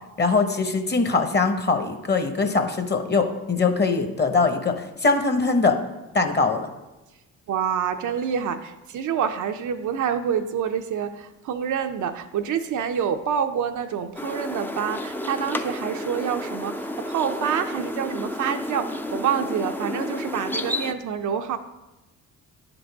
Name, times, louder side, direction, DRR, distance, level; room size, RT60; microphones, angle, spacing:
voice 1, 0.2-5.8 6.1-6.7, left 4 dB, 25° left, 6 dB, 1.0 m, -22 dB
voice 2, 7.5-21.6, right 8 dB, 50° right, 7 dB, 0.5 m, -27 dB
sound 1, 14.2-20.9, left 1 dB, 5° left, 0.4 m, -31 dB
10.5 x 4.0 x 3.5 m, 1.0 s
hypercardioid pair, 50°, 38 cm